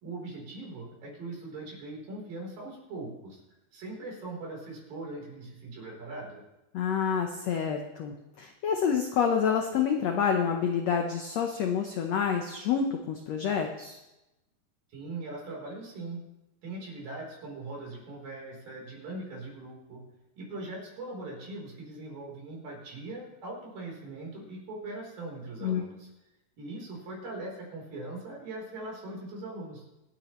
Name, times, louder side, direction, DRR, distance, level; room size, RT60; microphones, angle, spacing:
voice 1, 0.0-3.4 3.7-6.4 14.9-16.2 16.6-20.0 20.4-26.1 26.6-29.8, right 2 dB, 70° right, -2 dB, 5.5 m, -40 dB
voice 2, 6.7-14.0 25.6-25.8, left 7 dB, 75° left, 4 dB, 1.5 m, -28 dB
25.5 x 8.9 x 3.1 m, 0.95 s
omnidirectional pair, 4.2 m